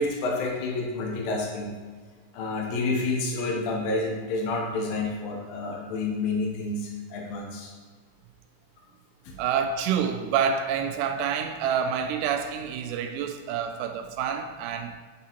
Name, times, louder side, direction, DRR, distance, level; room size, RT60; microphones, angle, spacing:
voice 1, 0.0-1.7 2.3-7.7 9.2-9.3, left 2 dB, 65° left, -1 dB, 1.8 m, -29 dB
voice 2, 9.4-14.9, right 7 dB, 85° right, 7 dB, 2.1 m, -27 dB
6.6 x 3.8 x 4.3 m, 1.4 s
omnidirectional pair, 3.7 m